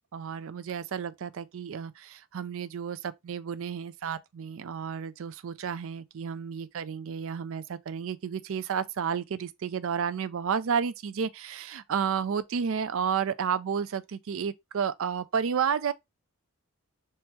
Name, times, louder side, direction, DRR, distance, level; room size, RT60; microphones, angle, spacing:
voice 1, 0.1-15.9, right 7 dB, 65° right, 0.4 m, -31 dB
4.3 x 2.7 x 3.6 m
head